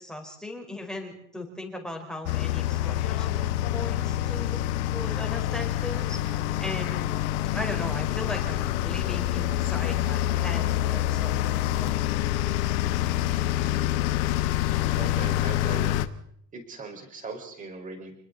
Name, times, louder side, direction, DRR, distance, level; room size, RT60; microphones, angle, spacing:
voice 1, 0.0-4.6 4.9-7.1 7.5-11.4 11.8-12.1, left 1 dB, ahead, 2 dB, 4.7 m, -38 dB
sound 1, 2.3-16.1, left 13 dB, 70° left, 1.4 m, -26 dB
voice 2, 15.0-16.0 16.5-18.1, right 4 dB, 20° right, 3 dB, 5.1 m, -39 dB
29.5 x 21.0 x 4.1 m, 0.71 s
cardioid pair, 155°, 35 cm